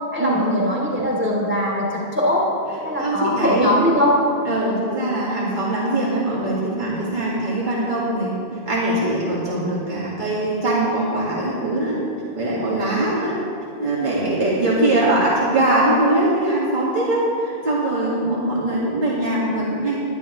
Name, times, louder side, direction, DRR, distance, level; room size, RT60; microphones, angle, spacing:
voice 1, 0.1-2.5 2.8-4.2, left 1 dB, 10° right, -5 dB, 2.9 m, -21 dB
voice 2, 2.9-3.7 4.4-8.3 8.7-12.0 12.3-13.4 13.8-20.0, right 1 dB, 50° right, -7 dB, 2.2 m, -22 dB
20.0 x 10.5 x 3.2 m, 2.6 s
omnidirectional pair, 1.0 m